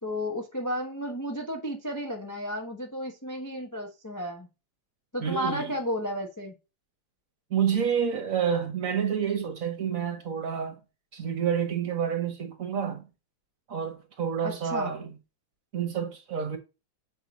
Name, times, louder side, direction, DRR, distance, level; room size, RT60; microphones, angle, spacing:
voice 1, 0.0-4.5 5.1-6.5 14.4-14.9, equal, 20° left, 0.5 m, -33 dB
voice 2, 5.2-5.7 7.5-10.8 11.1-13.1 13.7-15.2 15.7-16.6, right 7 dB, 50° right, 1.3 m, -29 dB
7.2 x 3.0 x 5.2 m
omnidirectional pair, 2.1 m